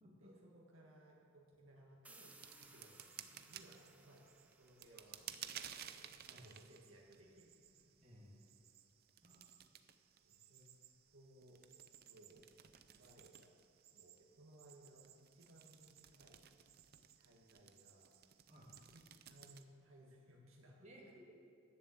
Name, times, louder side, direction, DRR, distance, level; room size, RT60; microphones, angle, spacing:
voice 1, 0.2-4.3 4.6-7.9 10.2-10.7 11.1-11.6 12.0-12.5 13.0-13.6 13.9-16.5 17.2-18.1 18.7-19.0 19.3-20.9, right 1 dB, 85° right, -1 dB, 1.8 m, -63 dB
sound 1, 2.0-5.7, right 2 dB, 5° right, 0.6 m, -64 dB
sound 2, 2.3-19.6, right 10 dB, 50° right, 0.5 m, -57 dB
voice 2, 8.0-8.4 9.2-9.5 18.5-18.7 20.8-21.3, equal, 35° right, -4 dB, 2.3 m, -59 dB
11.0 x 6.7 x 7.7 m, 2.5 s
head